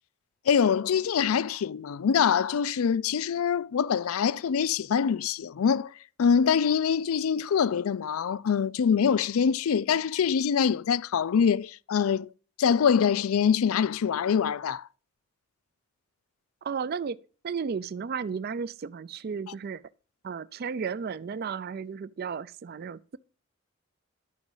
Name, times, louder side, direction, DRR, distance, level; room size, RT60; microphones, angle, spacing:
voice 1, 0.5-5.9 6.2-12.3 12.6-14.9, left 7 dB, 80° left, 0.4 m, -24 dB
voice 2, 16.6-17.2 17.4-19.8 20.2-23.2, right 6 dB, 45° right, 0.3 m, -34 dB
12.0 x 5.0 x 5.4 m
head